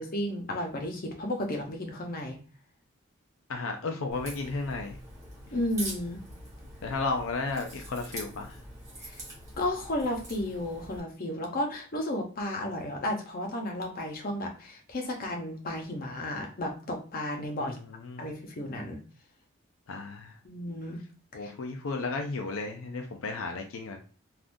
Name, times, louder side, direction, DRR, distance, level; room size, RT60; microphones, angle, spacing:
voice 1, 0.0-2.4 5.5-6.2 9.0-9.2 9.6-17.8 18.2-19.0 20.4-21.0 21.4-21.5, left 1 dB, 45° left, 2 dB, 0.7 m, -33 dB
voice 2, 3.5-5.0 6.8-8.6 17.6-18.2 19.9-20.3 21.3-24.0, left 3 dB, 75° left, 4 dB, 0.5 m, -33 dB
Crack, 4.1-11.0, right 1 dB, 15° right, 1.4 m, -44 dB
3.6 x 2.4 x 2.5 m, 0.39 s
head